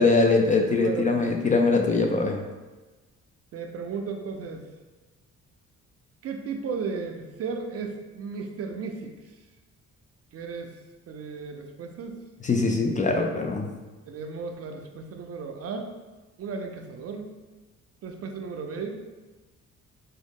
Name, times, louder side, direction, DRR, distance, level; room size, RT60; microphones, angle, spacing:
voice 1, 0.0-2.4 12.4-13.7, left 3 dB, 25° left, 2 dB, 0.3 m, -22 dB
voice 2, 0.8-1.3 3.5-4.6 6.2-9.1 10.3-10.7 11.1-12.2 12.6-12.8 14.1-15.9 16.4-17.3 18.0-19.1, right 5 dB, 50° right, 4 dB, 0.5 m, -35 dB
3.7 x 2.0 x 3.5 m, 1.2 s
cardioid pair, 90°, 30 cm